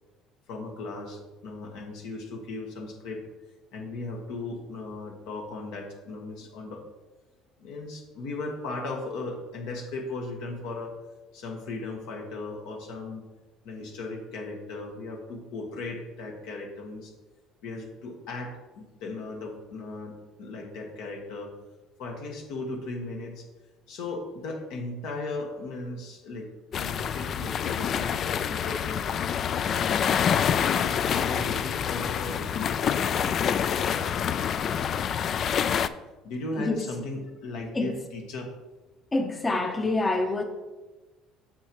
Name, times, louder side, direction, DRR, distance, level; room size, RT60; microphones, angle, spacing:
voice 1, 0.5-3.2 3.7-6.8 7.6-10.9 11.3-13.2 13.6-17.1 17.6-21.5 22.0-23.5 23.9-29.0 29.5-30.1 30.6-33.3 33.7-34.3 36.2-38.5, left 2 dB, 75° left, 2 dB, 1.3 m, -37 dB
sound 1, 26.7-35.9, left 8 dB, 50° left, 0.3 m, -27 dB
voice 2, 39.1-40.4, left 2 dB, 20° left, 5 dB, 0.7 m, -26 dB
8.9 x 6.3 x 3.0 m, 1.2 s
supercardioid pair, 95°, 0 cm